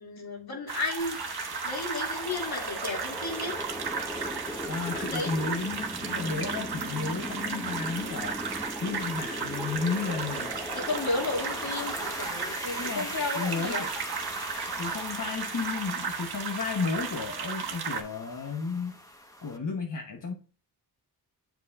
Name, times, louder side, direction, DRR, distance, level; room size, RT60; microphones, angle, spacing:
voice 1, 0.0-1.2 1.6-3.5 4.9-5.3 10.7-13.8, left 3 dB, 70° left, -1 dB, 2.7 m, -33 dB
sound 1, 0.7-18.0, right 6 dB, 75° right, 1.3 m, -35 dB
sound 2, 1.0-19.6, equal, 10° left, 1.3 m, -39 dB
voice 2, 4.7-8.4 8.8-10.5 12.8-13.9 14.8-19.0 19.4-20.3, left 4 dB, 55° left, 1 dB, 1.2 m, -33 dB
7.6 x 6.1 x 2.5 m, 0.36 s
cardioid pair, 80°, 38 cm